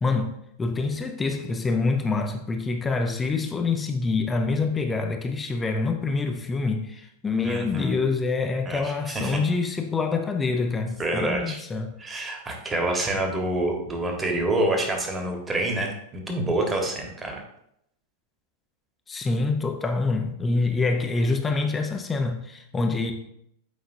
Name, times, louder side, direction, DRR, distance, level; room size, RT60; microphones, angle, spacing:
voice 1, 0.0-11.9 19.1-23.1, left 3 dB, 15° left, 0.6 m, -26 dB
voice 2, 7.4-8.0 8.6-9.4 11.0-11.6 12.0-17.4, right 1 dB, 15° right, 1.4 m, -27 dB
8.0 x 5.0 x 2.7 m
figure-of-eight pair, 90°, 0 cm